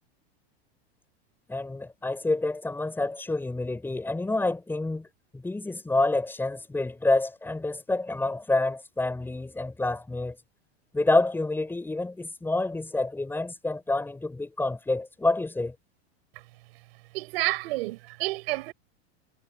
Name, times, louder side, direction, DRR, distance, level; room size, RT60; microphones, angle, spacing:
voice 1, 1.5-5.1 5.3-10.4 10.9-15.7, left 2 dB, 5° left, 6.2 m, -28 dB
voice 2, 17.1-18.7, right 20 dB, 65° right, 4.5 m, -29 dB
supercardioid pair, 150°, 33 cm